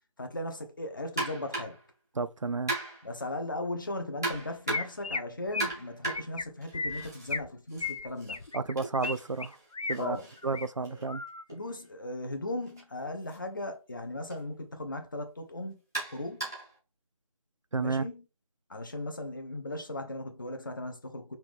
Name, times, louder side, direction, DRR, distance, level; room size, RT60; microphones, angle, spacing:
voice 1, 0.2-1.8 3.0-8.4 10.0-10.3 10.9-11.1 11.5-15.8 16.1-16.5 17.8-18.2 18.7-21.4, left 1 dB, 35° left, 0.9 m, -37 dB
sound 1, 1.2-1.9 2.7-3.2 4.2-5.1 5.6-7.4 7.7-11.6 12.6-12.8 13.3-13.4 14.3-14.4 15.9-16.8, right 2 dB, 5° right, 0.6 m, -37 dB
voice 2, 2.2-2.7 8.5-9.6 9.9-10.2 10.4-11.2 17.7-18.1, right 4 dB, 60° right, 0.4 m, -31 dB
Chirp tweet, 4.3-4.4 4.7-5.2 5.5-5.7 6.1-6.4 6.7-7.5 7.8-9.1 9.4-10.0 10.4-10.7 11.1-11.4, left 4 dB, 75° left, 0.5 m, -34 dB
5.8 x 2.6 x 3.5 m
figure-of-eight pair, 165°, 18 cm